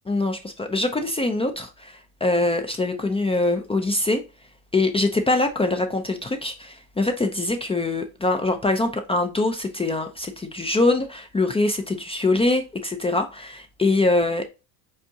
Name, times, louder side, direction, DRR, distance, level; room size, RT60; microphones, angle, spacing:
voice 1, 0.1-4.2 4.7-14.5, left 2 dB, 10° left, 0.6 m, -23 dB
5.5 x 3.5 x 2.8 m
hypercardioid pair, 80°, 47 cm